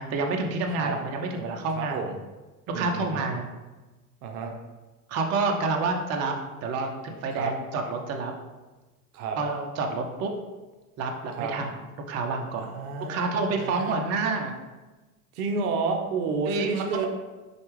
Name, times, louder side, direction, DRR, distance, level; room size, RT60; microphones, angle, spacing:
voice 1, 0.0-2.0 2.7-3.5 5.1-6.3 6.6-8.3 9.4-10.3 11.0-11.7 12.1-12.7 13.1-14.5 16.5-17.1, right 3 dB, 35° right, 3 dB, 0.5 m, -28 dB
voice 2, 1.7-2.2 2.7-3.3 4.2-4.5 7.3-7.5 9.1-9.4 11.4-11.5 12.6-14.2 15.3-17.1, right 4 dB, 75° right, 4 dB, 0.6 m, -31 dB
4.3 x 2.3 x 3.1 m, 1.2 s
hypercardioid pair, 85°, 46 cm